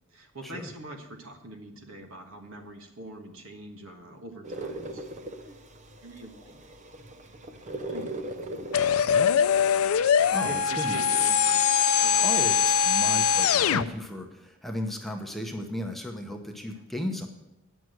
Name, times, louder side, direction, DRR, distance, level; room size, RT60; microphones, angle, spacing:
voice 1, 0.1-5.1 5.5-5.6 6.0-6.8 7.5-8.3 9.4-10.1 10.4-12.3 16.7-16.8, right 2 dB, 75° right, 4 dB, 1.4 m, -44 dB
sound 1, 4.4-10.8, right 1 dB, 35° right, 0.7 m, -40 dB
sound 2, 8.7-13.9, left 7 dB, 80° left, 0.4 m, -22 dB
voice 2, 10.3-11.3 12.2-17.3, left 1 dB, ahead, 3 dB, 0.8 m, -35 dB
9.2 x 6.2 x 7.9 m, 0.91 s
head